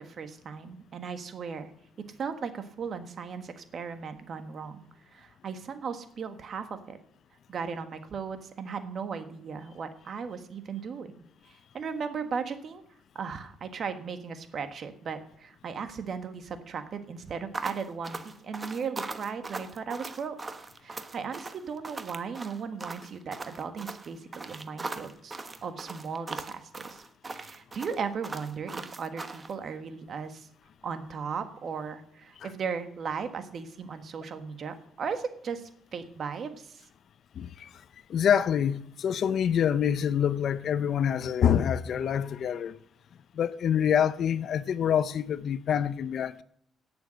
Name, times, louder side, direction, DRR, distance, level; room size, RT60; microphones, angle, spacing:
voice 1, 0.0-1.7 2.2-4.9 5.1-7.0 7.5-11.1 11.5-12.8 13.1-20.4 20.8-30.5 30.8-36.8, right 6 dB, 55° right, 1.5 m, -37 dB
sound 1, 17.5-29.5, right 3 dB, 25° right, 1.2 m, -39 dB
voice 2, 37.4-37.7 38.1-42.8 43.4-46.4, left 8 dB, 65° left, 0.6 m, -26 dB
17.5 x 7.0 x 6.4 m
cardioid pair, 90°, 0 cm